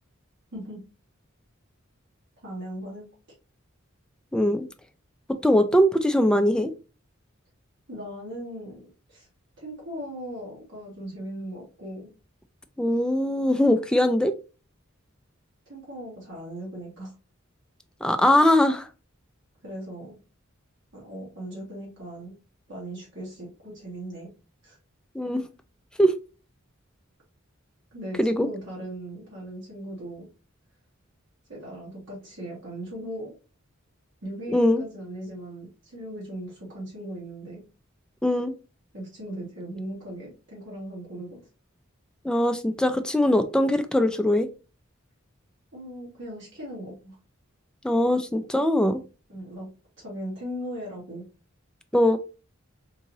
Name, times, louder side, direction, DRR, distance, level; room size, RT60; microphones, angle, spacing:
voice 1, 0.5-0.8 2.4-3.1 7.9-8.8 9.1-9.3 9.6-12.1 15.7-17.1 19.6-20.2 20.9-22.4 22.7-24.3 24.6-24.8 27.9-30.3 31.5-33.3 34.2-37.6 38.9-41.4 45.7-47.1 49.3-49.7 50.0-51.2, right 1 dB, 65° right, 1.5 m, -38 dB
voice 2, 4.3-4.7 5.3-6.7 12.8-14.3 18.0-18.9 25.1-25.4 26.0-26.1 28.2-28.5 34.5-34.8 38.2-38.5 42.2-44.5 47.8-49.0 51.9-52.2, left 1 dB, 5° left, 0.3 m, -21 dB
3.8 x 2.9 x 2.7 m
head